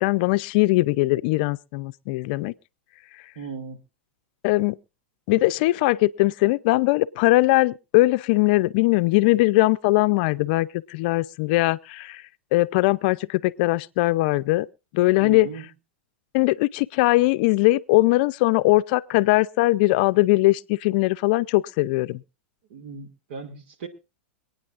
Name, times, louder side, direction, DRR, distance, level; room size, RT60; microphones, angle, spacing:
voice 1, 0.0-2.5 4.4-4.8 5.3-12.2 12.5-14.7 14.9-15.5 16.3-22.2, left 20 dB, 50° left, 0.6 m, -20 dB
voice 2, 3.4-3.8 15.2-15.7 22.7-23.9, right 5 dB, 65° right, 2.4 m, -37 dB
26.0 x 9.5 x 2.5 m
supercardioid pair, 145°, 7 cm